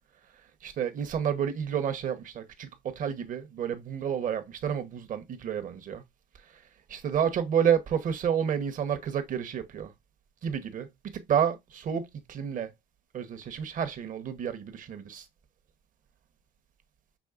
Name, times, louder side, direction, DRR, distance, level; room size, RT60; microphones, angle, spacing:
voice 1, 0.6-6.0 6.9-9.9 10.4-10.9 11.1-12.7 13.1-15.2, right 8 dB, 50° right, 1.0 m, -30 dB
6.1 x 3.2 x 2.5 m
cardioid pair, 110°, 17 cm